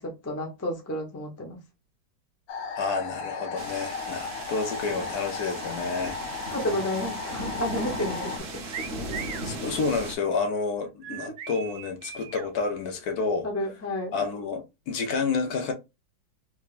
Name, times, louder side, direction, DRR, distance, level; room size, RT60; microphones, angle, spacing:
voice 1, 0.0-1.6 5.8-6.0 6.5-8.5 13.4-14.1, left 1 dB, 25° left, 0.3 m, -31 dB
sound 1, 2.5-8.4, left 5 dB, 90° left, 1.4 m, -36 dB
voice 2, 2.8-6.2 9.4-13.5 14.1-15.7, left 4 dB, 65° left, 1.1 m, -29 dB
sound 2, 3.6-10.2, right 1 dB, 50° right, 1.0 m, -37 dB
sound 3, 8.7-9.5 11.0-12.5, right 7 dB, 85° right, 0.6 m, -38 dB
3.5 x 3.3 x 2.4 m
omnidirectional pair, 1.9 m